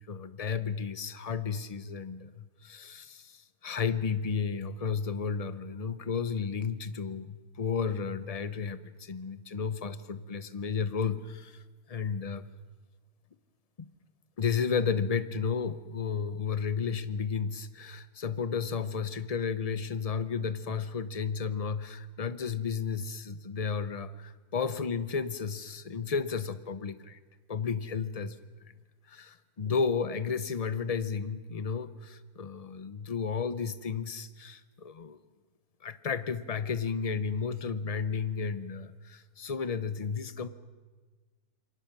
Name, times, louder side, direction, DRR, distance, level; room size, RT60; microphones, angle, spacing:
voice 1, 0.0-11.6 11.9-12.5 13.8-13.9 14.4-27.2 27.5-28.4 29.1-35.2 35.8-40.5, left 6 dB, 40° left, 14 dB, 0.6 m, -33 dB
27.5 x 23.5 x 6.1 m, 1.4 s
omnidirectional pair, 1.6 m